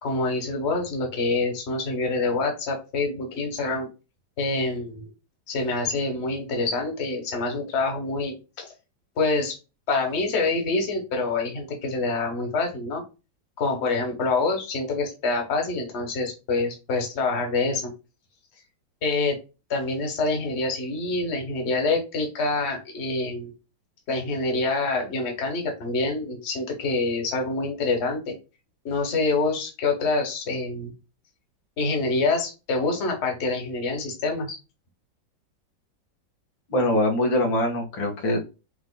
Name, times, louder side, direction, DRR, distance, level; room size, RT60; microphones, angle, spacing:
voice 1, 0.0-3.9 4.4-5.1 5.5-8.7 9.2-9.5 9.9-13.0 13.6-17.9 19.0-19.4 19.7-23.5 24.1-28.3 28.8-30.9 31.8-34.6, left 3 dB, 40° left, 2 dB, 1.5 m, -26 dB
voice 2, 36.7-38.4, left 1 dB, 85° left, 0 dB, 2.4 m, -23 dB
6.0 x 3.6 x 2.2 m, 0.29 s
omnidirectional pair, 2.1 m